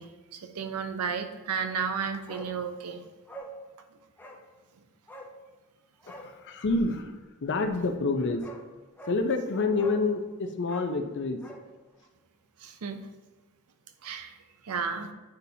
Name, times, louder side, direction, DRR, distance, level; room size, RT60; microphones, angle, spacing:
voice 1, 0.0-3.1 12.6-13.1 14.0-14.4 14.6-15.1, right 6 dB, 90° right, 7 dB, 0.6 m, -33 dB
Bark, 2.3-2.5 2.8-2.9 3.3-3.6 4.2-4.4 5.1-5.3 6.0-6.3 7.9-8.0 8.4-8.6 9.0-9.2 9.8-10.1 10.6-11.7 11.9-12.0, right 1 dB, 10° left, 0.6 m, -44 dB
voice 2, 6.1-7.2 7.4-8.4 9.1-11.4, left 3 dB, 55° left, 7 dB, 0.6 m, -28 dB
8.9 x 4.1 x 2.7 m, 1.2 s
head